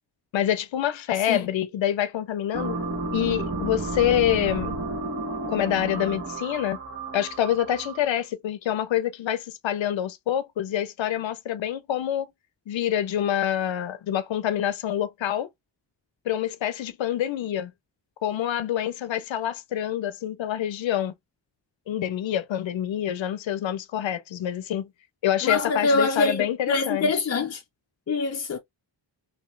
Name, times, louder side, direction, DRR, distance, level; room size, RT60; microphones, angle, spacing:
voice 1, 0.3-2.8 3.1-4.8 5.5-6.8 7.1-12.3 12.7-15.5 16.3-17.7 18.2-21.1 21.9-24.9 25.2-27.1, left 11 dB, 85° left, 0.6 m, -26 dB
sound 1, 2.5-8.2, right 2 dB, 30° right, 1.2 m, -32 dB
voice 2, 25.4-27.6 28.1-28.6, left 3 dB, 35° left, 0.5 m, -25 dB
3.0 x 2.9 x 3.1 m
wide cardioid pair, 120°, 44 cm